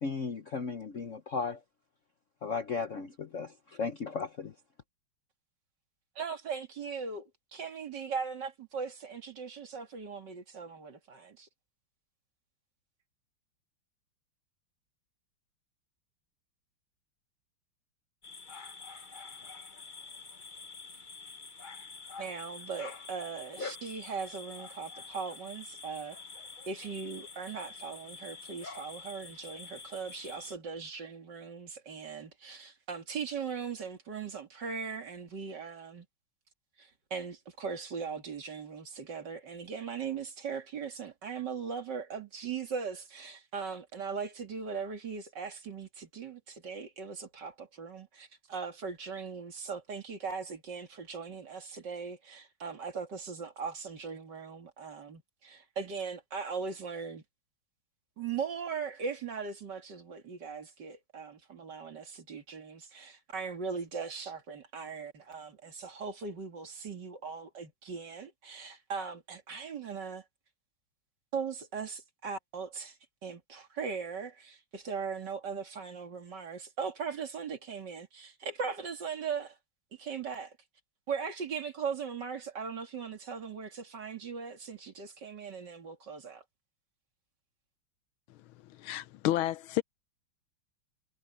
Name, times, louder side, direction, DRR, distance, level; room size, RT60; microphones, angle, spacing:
voice 1, 0.0-1.6 2.4-4.5, left 5 dB, 50° left, 1.0 m, -35 dB
voice 2, 6.2-11.5 22.2-26.2 26.7-36.1 36.8-57.2 58.2-70.2 71.3-73.0 73.2-79.6 80.0-80.5 81.1-86.4, right 5 dB, 55° right, 2.8 m, -39 dB
sound 1, 18.2-30.6, left 4 dB, 30° left, 1.1 m, -47 dB
voice 3, 88.3-89.8, left 14 dB, 80° left, 1.4 m, -32 dB
omnidirectional pair, 2.3 m